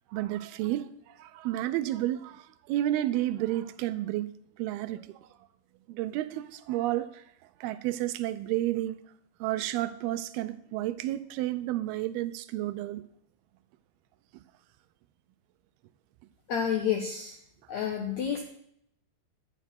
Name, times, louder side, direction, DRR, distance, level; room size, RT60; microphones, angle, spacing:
voice 1, 0.1-5.3 5.9-7.2 7.6-9.0 9.4-13.0, right 14 dB, 80° right, 2.4 m, -31 dB
voice 2, 16.5-17.4 17.7-18.4, left 8 dB, 70° left, 1.7 m, -29 dB
12.0 x 9.3 x 5.9 m
omnidirectional pair, 4.7 m